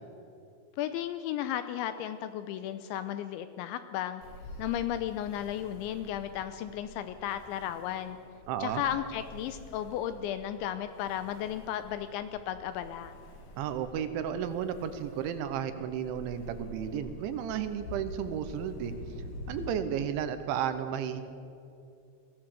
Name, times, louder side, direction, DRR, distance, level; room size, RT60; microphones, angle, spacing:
voice 1, 0.8-4.2 4.6-8.2 8.6-13.1, left 11 dB, 85° left, 11 dB, 2.8 m, -34 dB
Ocean, 4.2-19.7, left 1 dB, 50° left, 2.6 m, -47 dB
voice 2, 8.5-8.8 13.6-18.9 19.5-21.2, right 9 dB, 75° right, 10 dB, 3.2 m, -33 dB
22.0 x 15.5 x 7.7 m, 2.6 s
omnidirectional pair, 5.8 m